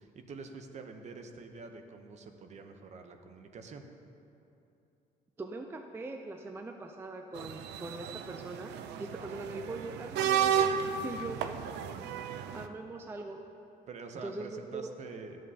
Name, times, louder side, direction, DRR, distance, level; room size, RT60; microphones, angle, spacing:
voice 1, 0.0-3.9 9.2-9.6 13.9-15.4, right 4 dB, 45° right, 6 dB, 0.7 m, -46 dB
voice 2, 5.4-8.7 9.0-10.7 11.0-11.6 12.5-13.4 14.2-14.9, right 2 dB, 15° right, 4 dB, 0.3 m, -41 dB
sound 1, 7.3-12.7, right 8 dB, 90° right, 0.4 m, -33 dB
13.5 x 7.5 x 2.7 m, 2.8 s
cardioid pair, 130°, 17 cm